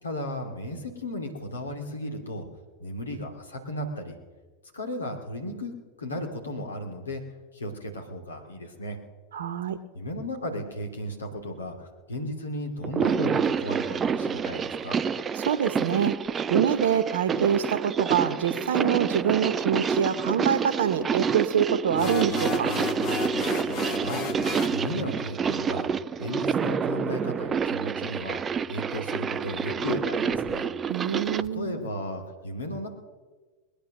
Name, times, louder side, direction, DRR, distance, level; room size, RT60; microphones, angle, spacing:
voice 1, 0.0-2.5 2.8-4.1 4.7-7.2 7.5-9.0 9.9-15.0 23.9-24.3 24.7-25.9 26.2-28.4 28.7-30.7 31.3-32.9, left 1 dB, 70° left, 3 dB, 2.7 m, -35 dB
voice 2, 9.3-9.8 14.3-14.4 15.3-16.2 16.5-22.7 30.9-31.9, right 8 dB, 60° right, 12 dB, 1.0 m, -25 dB
sound 1, 12.8-31.5, right 6 dB, 20° right, 0.4 m, -28 dB
sound 2, 21.9-24.8, left 5 dB, 40° left, 2.0 m, -32 dB
21.0 x 10.0 x 6.6 m, 1.4 s
figure-of-eight pair, 90°, 0 cm